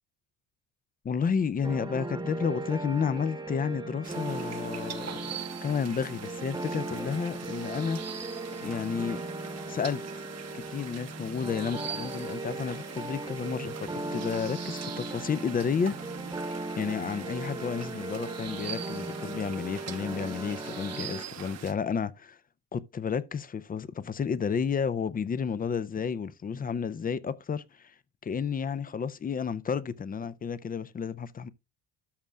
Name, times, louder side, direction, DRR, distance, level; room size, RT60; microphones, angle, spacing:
voice 1, 1.0-8.0 8.6-9.2 9.6-10.2 10.5-16.0 16.8-22.4 22.7-27.9 28.2-31.5, left 6 dB, 25° left, 0.4 m, -31 dB
sound 1, 1.6-21.2, right 2 dB, 10° right, 1.0 m, -38 dB
sound 2, 4.0-21.7, right 8 dB, 45° right, 0.9 m, -43 dB
13.0 x 6.3 x 2.2 m
cardioid pair, 130°, 37 cm